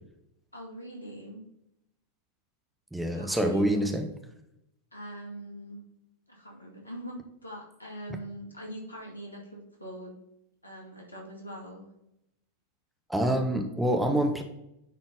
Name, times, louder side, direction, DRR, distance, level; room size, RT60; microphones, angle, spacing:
voice 1, 0.5-1.4 3.1-3.7 4.9-5.8 6.3-10.2 10.6-11.9, right 1 dB, 80° left, -1 dB, 2.0 m, -42 dB
voice 2, 2.9-4.1 13.1-14.4, right 1 dB, 5° right, 4 dB, 0.9 m, -26 dB
9.7 x 4.2 x 3.8 m, 0.81 s
figure-of-eight pair, 90°, 0 cm